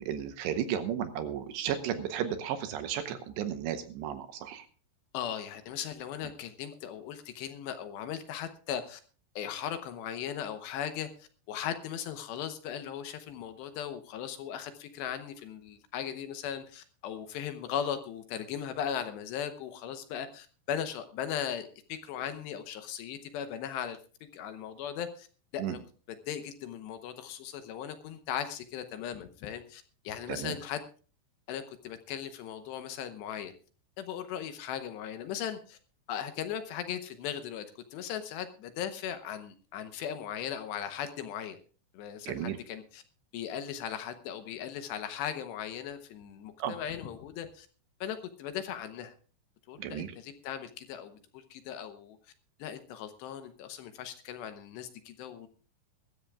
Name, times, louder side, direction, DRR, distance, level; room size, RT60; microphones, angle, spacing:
voice 1, 0.0-4.6 25.6-25.8 30.3-30.5 42.3-42.6 46.6-46.7 49.8-50.1, right 9 dB, 75° right, 9 dB, 2.8 m, -34 dB
voice 2, 5.1-9.0 9.4-24.0 24.3-25.3 25.5-25.8 26.1-30.8 31.5-33.5 34.0-35.8 36.1-41.6 41.9-43.0 43.3-47.7 48.0-49.1 49.7-52.2 52.6-55.5, left 9 dB, 75° left, 9 dB, 2.8 m, -38 dB
22.0 x 13.5 x 2.4 m, 0.38 s
omnidirectional pair, 5.6 m